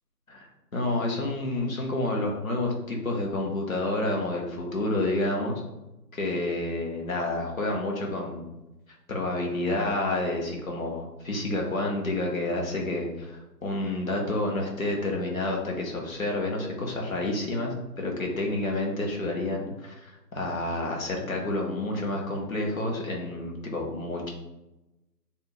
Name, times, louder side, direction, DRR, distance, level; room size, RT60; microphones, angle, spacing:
voice 1, 0.7-5.6 6.1-8.4 9.1-24.3, left 2 dB, 55° left, -1 dB, 1.0 m, -29 dB
4.6 x 2.7 x 3.0 m, 0.97 s
figure-of-eight pair, 165°, 50 cm